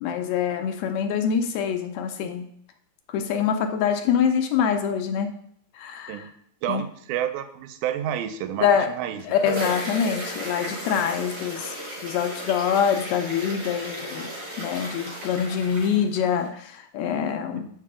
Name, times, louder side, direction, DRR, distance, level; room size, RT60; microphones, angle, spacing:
voice 1, 0.0-2.4 3.1-5.3 5.8-6.3 6.7-6.8 8.6-8.9 9.3-11.7 12.0-14.3 14.6-17.7, left 7 dB, 80° left, 6 dB, 1.7 m, -25 dB
voice 2, 6.6-9.2, right 10 dB, 90° right, 9 dB, 2.0 m, -29 dB
sound 1, 9.0-16.5, right 1 dB, 50° right, 2.2 m, -35 dB
6.6 x 4.7 x 3.6 m, 0.67 s
omnidirectional pair, 3.4 m